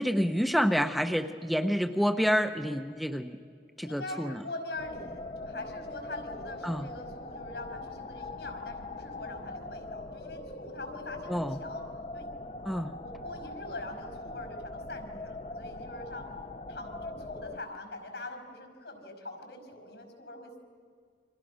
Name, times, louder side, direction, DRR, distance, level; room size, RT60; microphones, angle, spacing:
voice 1, 0.0-3.4 3.8-4.4 6.6-6.8 11.3-11.6 12.6-12.9, equal, ahead, 7 dB, 0.7 m, -28 dB
voice 2, 3.8-11.8 12.1-12.3 12.6-12.7 13.0-16.3 16.7-20.6, left 2 dB, 80° left, 6 dB, 5.3 m, -43 dB
sound 1, 4.8-17.6, left 2 dB, 35° left, 0.7 m, -42 dB
29.5 x 25.5 x 6.2 m, 2.1 s
head